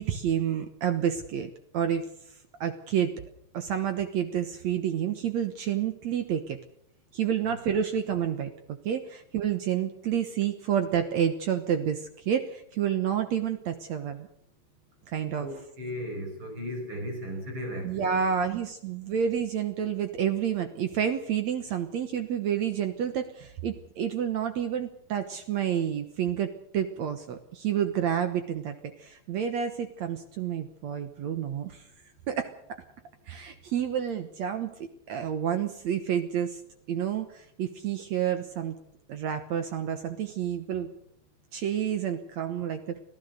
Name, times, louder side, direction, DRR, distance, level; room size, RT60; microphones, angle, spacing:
voice 1, 0.0-2.1 2.6-3.1 3.5-6.6 7.1-8.5 8.8-14.3 15.1-15.5 17.8-31.8 32.3-32.5 33.3-34.7 35.1-36.6 36.9-38.8 39.1-40.9 41.5-43.0, right 9 dB, 65° right, 8 dB, 1.8 m, -29 dB
voice 2, 15.4-18.3, equal, 30° right, 3 dB, 6.1 m, -36 dB
25.5 x 16.0 x 6.6 m, 0.70 s
omnidirectional pair, 4.5 m